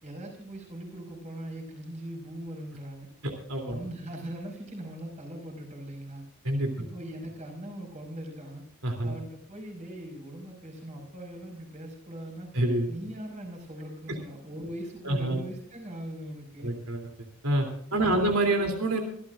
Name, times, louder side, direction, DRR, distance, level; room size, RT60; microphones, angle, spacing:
voice 1, 0.0-3.1 3.7-6.2 6.8-8.6 9.0-12.5 12.9-16.7 18.6-18.7, right 1 dB, 35° right, 2 dB, 5.1 m, -40 dB
voice 2, 3.5-3.8 6.4-6.7 8.8-9.1 12.5-12.9 15.0-15.4 16.6-17.0 17.4-19.0, right 1 dB, 90° right, 4 dB, 3.2 m, -26 dB
25.5 x 13.0 x 2.5 m, 0.66 s
head